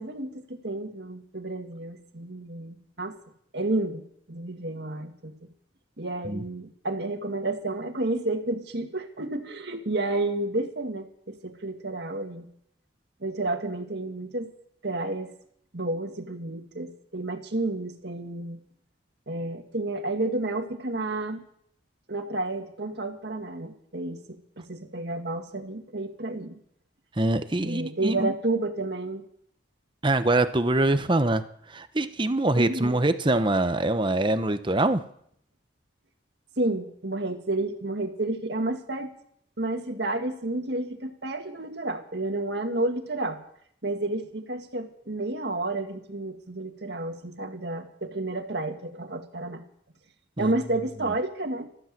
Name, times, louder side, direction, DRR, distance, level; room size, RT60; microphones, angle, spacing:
voice 1, 0.0-3.1 3.5-5.3 6.0-12.5 13.2-14.5 14.8-15.3 15.7-18.6 19.3-21.4 22.1-26.5 27.6-29.2 32.6-33.0 36.6-39.1 39.6-43.4 43.8-49.6 50.4-51.7, right 2 dB, 60° right, 5 dB, 2.0 m, -31 dB
voice 2, 27.2-28.3 30.0-35.0 50.4-50.5, right 2 dB, 25° right, 10 dB, 0.9 m, -24 dB
14.0 x 13.0 x 7.6 m, 0.68 s
head